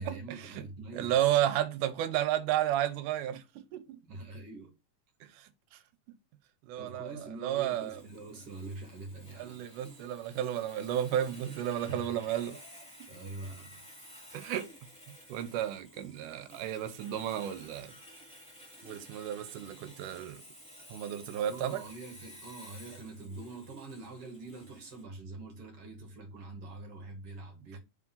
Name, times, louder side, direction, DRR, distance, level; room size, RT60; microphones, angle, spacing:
voice 1, 0.0-1.3 4.0-4.7 6.8-9.7 11.8-12.1 13.1-13.9 21.5-27.8, right 3 dB, 55° right, 2.1 m, -44 dB
voice 2, 0.9-4.0 5.2-5.8 6.6-7.1 7.4-8.0 9.4-12.6 14.3-14.7 15.3-17.9 18.8-20.4 20.9-21.8, right 11 dB, 90° right, 2.3 m, -32 dB
Sawing, 7.5-25.0, equal, 5° left, 1.4 m, -53 dB
5.0 x 3.6 x 5.5 m
omnidirectional pair, 3.6 m